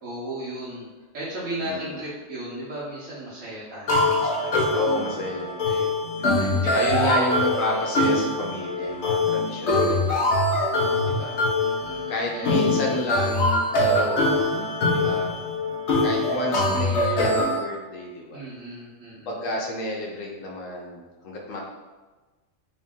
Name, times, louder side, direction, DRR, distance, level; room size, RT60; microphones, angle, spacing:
voice 1, 0.0-0.9 1.1-5.3 5.6-7.1 7.6-8.0 10.7-12.6 18.3-19.4, right 1 dB, 75° right, -10 dB, 1.4 m, -36 dB
voice 2, 1.6-2.0 4.7-5.7 6.6-10.7 11.0-11.4 12.1-14.6 14.9-15.3 16.0-18.4 19.3-21.6, left 1 dB, 85° left, -1 dB, 1.1 m, -31 dB
sound 1, 3.9-17.6, left 2 dB, 65° left, 1.0 m, -23 dB
3.3 x 2.8 x 3.6 m, 1.2 s
omnidirectional pair, 1.3 m